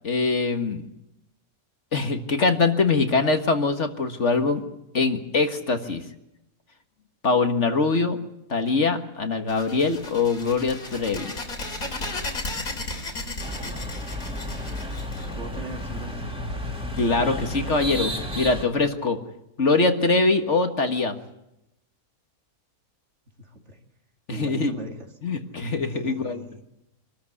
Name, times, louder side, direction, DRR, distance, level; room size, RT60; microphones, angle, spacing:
voice 1, 0.0-0.8 1.9-4.6 4.9-6.0 7.2-8.2 8.5-11.3 17.0-19.2 19.6-21.2 24.3-24.7 25.2-26.4, left 3 dB, 50° left, 7 dB, 1.9 m, -23 dB
sound 1, 9.5-16.0, left 2 dB, 70° left, 3.7 m, -34 dB
sound 2, 13.4-18.6, left 1 dB, 5° right, 2.9 m, -32 dB
voice 2, 13.6-14.0 14.7-14.9 15.3-16.5 23.4-23.8 24.3-25.1 25.9-26.6, right 2 dB, 50° right, 3 dB, 2.9 m, -40 dB
25.5 x 13.5 x 9.8 m, 0.85 s
omnidirectional pair, 1.6 m